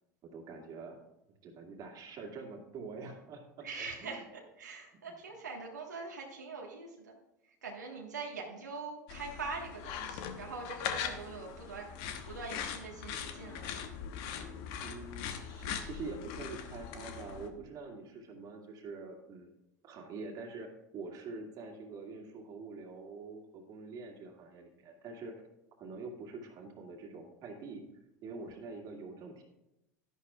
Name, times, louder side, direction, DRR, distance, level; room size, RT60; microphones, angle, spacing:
voice 1, 0.3-1.0 1.4-4.2 14.8-19.5 19.8-25.4 25.8-27.8 28.2-29.4, right 4 dB, 45° right, 2 dB, 2.1 m, -45 dB
voice 2, 3.6-7.2 7.6-11.9 12.3-13.8, right 4 dB, 85° right, -1 dB, 1.5 m, -43 dB
sound 1, 9.1-17.5, left 8 dB, 55° left, 1.1 m, -41 dB
11.0 x 11.0 x 2.4 m, 0.90 s
hypercardioid pair, 80°, 9 cm